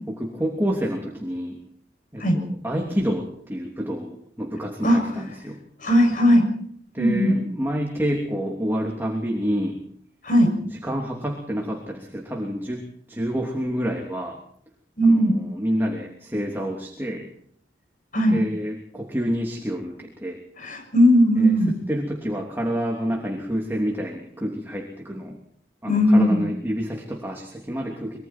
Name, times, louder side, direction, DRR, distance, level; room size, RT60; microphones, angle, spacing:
voice 1, 0.2-1.6 2.1-5.6 6.9-9.8 10.7-14.4 15.0-17.3 18.3-20.4 21.4-21.5 21.9-25.4 25.8-28.2, equal, 10° right, 0 dB, 3.0 m, -28 dB
voice 2, 5.8-6.4 7.0-7.4 10.2-10.5 15.0-15.4 18.1-18.4 20.6-21.7 25.9-26.5, equal, 50° left, 4 dB, 7.0 m, -18 dB
25.0 x 23.0 x 4.5 m, 0.64 s
head